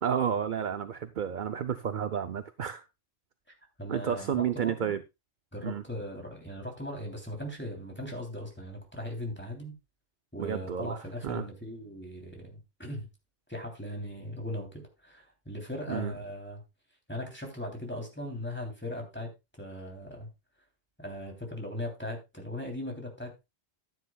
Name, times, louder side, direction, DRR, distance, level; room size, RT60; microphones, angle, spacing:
voice 1, 0.0-2.8 3.9-5.0 5.6-5.8 10.4-11.0 11.2-11.4 15.9-16.1, right 8 dB, 50° right, 0.7 m, -31 dB
voice 2, 3.8-4.9 5.5-9.7 10.3-13.1 13.5-16.6 17.1-19.3 19.6-20.3 21.0-23.5, left 1 dB, 10° left, 3.1 m, -39 dB
13.5 x 9.7 x 2.3 m
omnidirectional pair, 1.3 m